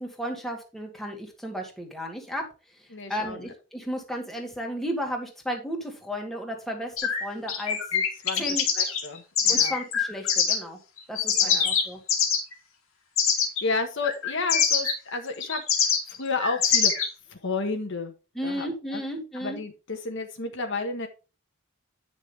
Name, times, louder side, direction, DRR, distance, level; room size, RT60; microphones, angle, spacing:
voice 1, 0.0-2.4 2.7-7.8 8.4-8.7 9.5-10.8 11.1-12.0 18.3-19.6, equal, ahead, 1 dB, 2.2 m, -34 dB
voice 2, 2.9-3.5 7.9-8.4 8.8-9.7 11.4-11.7 13.6-15.9 16.2-16.9 17.3-18.1 18.4-19.0 19.4-21.1, left 3 dB, 65° left, 5 dB, 1.4 m, -31 dB
sound 1, 7.0-10.6 11.0-12.5 13.2-13.6 14.0-17.1, left 7 dB, 85° left, 2.2 m, -24 dB
9.8 x 6.4 x 3.4 m, 0.31 s
head